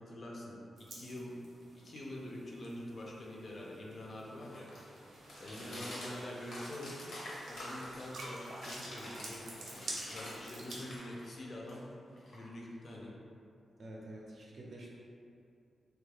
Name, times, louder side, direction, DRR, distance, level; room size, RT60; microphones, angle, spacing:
voice 1, 0.0-1.3 1.7-4.7 5.4-7.0 7.5-11.9 12.3-13.1, left 1 dB, 40° left, -3 dB, 0.4 m, -45 dB
sound 1, 0.8-11.0, right 2 dB, 90° right, 0.6 m, -49 dB
sound 2, 3.2-10.4 10.6-12.9, left 1 dB, 80° left, 0.8 m, -48 dB
voice 2, 5.5-5.8 13.8-14.9, right 1 dB, 45° right, -4 dB, 0.5 m, -48 dB
3.1 x 2.2 x 3.3 m, 2.6 s
wide cardioid pair, 175°, 0 cm